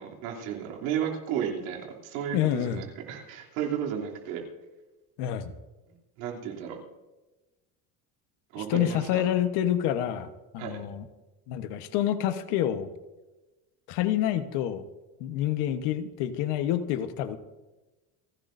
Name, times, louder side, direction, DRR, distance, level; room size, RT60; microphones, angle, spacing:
voice 1, 0.0-4.4 6.2-6.8 8.5-9.2 10.6-10.8, right 9 dB, 85° right, 0 dB, 3.1 m, -33 dB
voice 2, 2.3-2.8 5.2-5.5 8.6-11.1 11.5-12.9 13.9-14.8 15.2-17.4, left 11 dB, 75° left, 10 dB, 1.3 m, -28 dB
28.5 x 12.0 x 2.7 m, 1.1 s
supercardioid pair, 110°, 41 cm